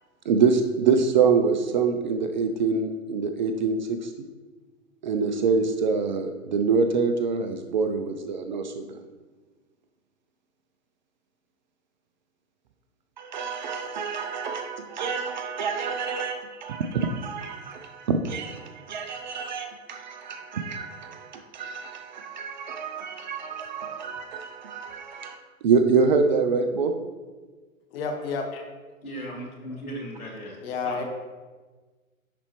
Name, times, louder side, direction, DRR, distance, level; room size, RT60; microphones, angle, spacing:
voice 1, 0.2-4.1 5.0-9.0 13.2-27.0, right 5 dB, 35° right, 0.4 m, -26 dB
voice 2, 27.9-28.6 30.6-31.0, left 4 dB, 45° left, 1.2 m, -30 dB
voice 3, 29.0-31.0, equal, 80° left, 2.1 m, -37 dB
10.0 x 4.2 x 3.0 m
figure-of-eight pair, 115°, 42 cm